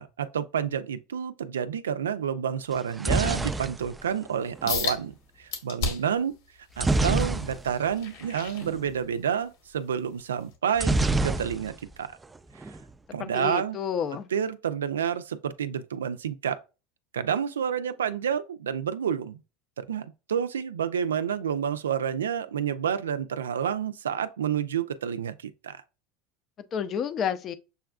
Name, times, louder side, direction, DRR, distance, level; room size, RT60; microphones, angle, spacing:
voice 1, 0.0-5.1 5.4-6.3 6.8-11.0 11.2-11.7 12.0-12.1 13.1-13.8 14.3-16.6 17.1-19.4 19.8-25.8, right 8 dB, 90° right, 0.4 m, -29 dB
sound 1, 2.7-4.8 6.8-7.9 8.2-8.4 8.6-8.8 10.8-11.9 12.2-12.8, right 2 dB, 15° right, 0.4 m, -27 dB
sound 2, 4.7-5.0 5.5-6.2 6.7-9.3 9.7-10.0 10.5-10.6, left 5 dB, 75° left, 1.5 m, -33 dB
voice 2, 13.2-14.3 26.7-27.5, left 8 dB, 45° left, 0.6 m, -30 dB
6.8 x 2.4 x 2.3 m
hypercardioid pair, 90°, 0 cm